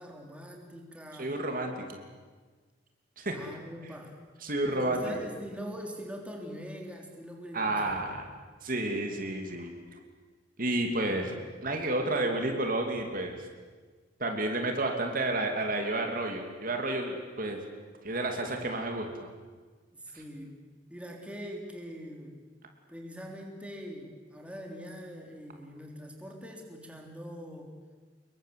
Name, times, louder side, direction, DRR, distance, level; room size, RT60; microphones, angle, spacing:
voice 1, 0.0-1.3 3.3-4.2 4.7-8.1 11.0-11.3 19.9-20.5 20.9-22.4 22.9-27.7, equal, 5° right, 1 dB, 3.5 m, -43 dB
voice 2, 1.2-2.0 3.2-3.3 4.4-5.2 7.5-8.2 8.6-9.7 10.6-11.3 11.6-13.4 14.2-17.6 18.0-19.3, right 2 dB, 50° right, 4 dB, 3.0 m, -31 dB
26.5 x 22.5 x 7.8 m, 1.4 s
head